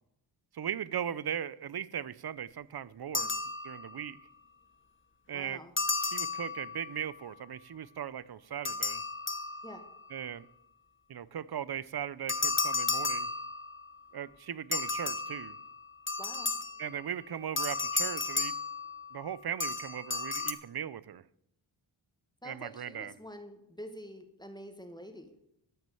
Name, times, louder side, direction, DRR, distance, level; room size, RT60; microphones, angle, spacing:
voice 1, 0.5-3.3 3.6-4.2 5.3-5.6 6.1-9.0 10.1-10.5 11.1-13.3 14.1-15.6 16.8-18.5 19.1-21.2 22.4-23.1, right 9 dB, 50° right, 19 dB, 0.6 m, -38 dB
sound 1, 3.1-4.1 5.8-7.0 8.6-10.0 12.3-13.9 14.7-17.0 17.6-19.3 19.6-20.5, left 3 dB, 25° left, 1.0 m, -33 dB
voice 2, 5.3-5.7 9.6-9.8 16.2-16.5 22.4-25.3, equal, 10° left, 6 dB, 1.6 m, -47 dB
13.5 x 6.3 x 7.7 m, 0.77 s
wide cardioid pair, 85°, 48 cm